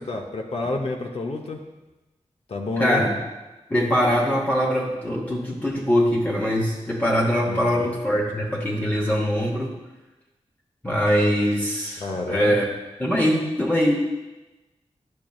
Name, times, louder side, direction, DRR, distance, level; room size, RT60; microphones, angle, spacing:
voice 1, 0.0-1.6 2.5-3.0 7.5-7.8 12.0-12.6, left 2 dB, 60° left, 0 dB, 0.7 m, -29 dB
voice 2, 2.8-3.1 3.7-9.8 10.8-12.7 13.0-13.9, equal, 15° left, -3 dB, 0.9 m, -22 dB
10.5 x 6.2 x 2.3 m, 1.1 s
wide cardioid pair, 90°, 12 cm